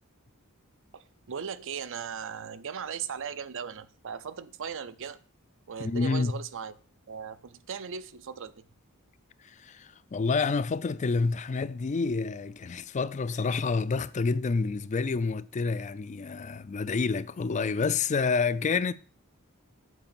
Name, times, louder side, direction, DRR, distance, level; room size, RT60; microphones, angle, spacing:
voice 1, 0.9-5.2 5.7-6.8 7.1-8.6, right 7 dB, 60° right, 0.6 m, -38 dB
voice 2, 5.8-6.3 9.6-18.9, left 4 dB, 35° left, 0.4 m, -28 dB
8.2 x 5.1 x 6.9 m
head